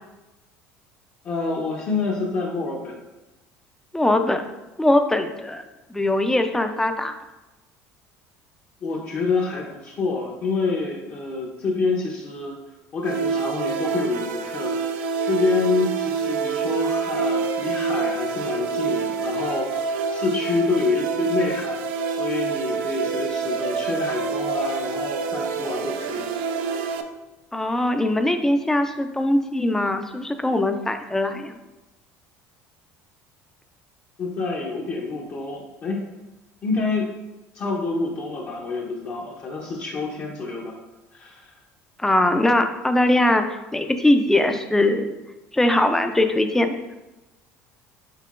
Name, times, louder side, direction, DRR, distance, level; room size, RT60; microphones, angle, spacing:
voice 1, 1.2-3.0 8.8-12.6 12.9-26.3 34.2-36.0 36.6-37.1 37.5-40.8 41.1-41.6, left 4 dB, 45° left, -3 dB, 0.7 m, -27 dB
voice 2, 3.9-4.4 4.8-5.6 5.9-7.1 27.5-31.6 42.0-43.4 43.7-45.2 45.5-46.8, left 1 dB, 10° left, 7 dB, 0.4 m, -21 dB
sound 1, 13.0-27.0, right 5 dB, 90° right, 0.4 m, -27 dB
5.6 x 3.7 x 2.4 m, 1.0 s
cardioid pair, 115°, 6 cm